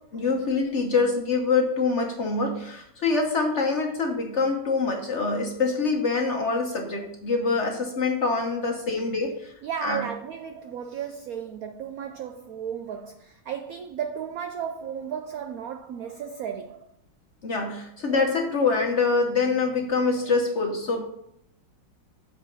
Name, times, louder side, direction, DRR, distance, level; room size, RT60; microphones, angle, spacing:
voice 1, 0.1-9.5 9.8-10.1 17.4-21.0, left 4 dB, 50° left, 0.9 m, -25 dB
voice 2, 9.6-16.9 20.2-20.3, right 8 dB, 75° right, 0.8 m, -34 dB
7.8 x 4.9 x 5.1 m
omnidirectional pair, 2.0 m